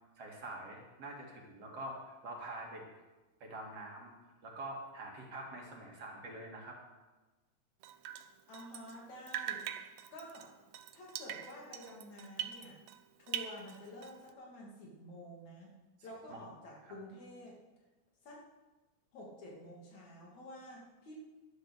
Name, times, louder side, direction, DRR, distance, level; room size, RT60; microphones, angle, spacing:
voice 1, 0.2-2.8 3.4-4.1 4.4-6.8 16.3-16.4 16.9-17.0, right 1 dB, 55° right, -1 dB, 3.2 m, -45 dB
Drip, 7.8-9.0 9.3-13.0 13.3-14.3, right 10 dB, 75° right, 1.6 m, -43 dB
voice 2, 8.5-9.8 10.1-10.5 10.9-12.8 13.2-15.7 16.0-17.6 18.2-18.5 19.1-21.1, left 1 dB, 70° left, -3 dB, 4.0 m, -50 dB
11.5 x 10.5 x 6.5 m, 1.2 s
omnidirectional pair, 3.4 m